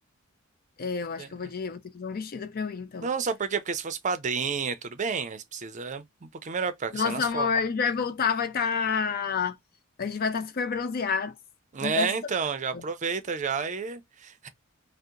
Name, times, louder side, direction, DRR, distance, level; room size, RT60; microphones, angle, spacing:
voice 1, 0.8-3.1 6.9-9.6 10.0-11.4 11.8-12.1 12.7-12.8, left 5 dB, 45° left, 0.4 m, -29 dB
voice 2, 3.0-7.5 11.7-14.5, right 5 dB, 35° right, 0.5 m, -30 dB
2.7 x 2.0 x 3.6 m
head